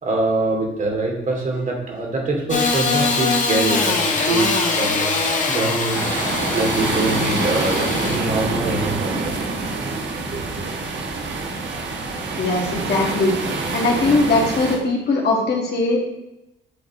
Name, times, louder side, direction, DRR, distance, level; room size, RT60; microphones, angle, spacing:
voice 1, 0.0-4.0 4.3-5.1 5.5-6.1 6.5-9.5 10.3-10.8, right 2 dB, 40° right, 0 dB, 2.6 m, -24 dB
Engine starting / Sawing, 2.5-8.2, left 4 dB, 40° left, 1.5 m, -22 dB
sound 1, 5.9-14.8, right 3 dB, 65° right, 1.3 m, -26 dB
voice 2, 12.4-13.3 13.7-16.1, left 2 dB, 55° left, -1 dB, 1.8 m, -20 dB
9.6 x 4.0 x 4.2 m, 0.88 s
cardioid pair, 90°, 20 cm